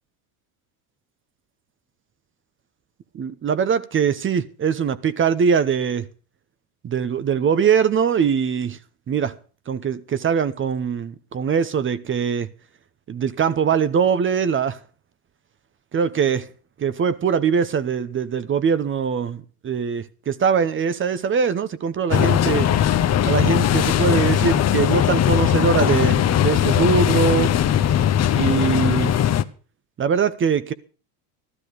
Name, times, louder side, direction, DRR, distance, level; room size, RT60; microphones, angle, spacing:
voice 1, 3.1-6.0 6.8-8.8 9.1-9.3 9.7-12.5 13.1-14.8 15.9-16.5 16.8-22.7 23.2-27.5 28.3-29.1 30.0-30.7, right 6 dB, 25° right, 0.8 m, -22 dB
sound 1, 22.1-29.4, left 10 dB, 35° left, 0.9 m, -19 dB
13.5 x 13.0 x 4.8 m
supercardioid pair, 95°, 46 cm